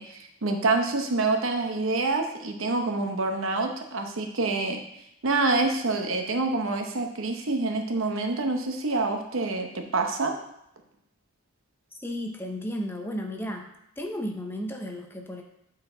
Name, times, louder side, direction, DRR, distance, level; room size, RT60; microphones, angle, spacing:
voice 1, 0.0-4.8 5.2-10.3, right 3 dB, 65° right, 4 dB, 0.8 m, -27 dB
voice 2, 11.9-13.7 14.0-15.4, equal, 10° left, 2 dB, 0.6 m, -33 dB
8.4 x 4.4 x 3.8 m, 0.77 s
head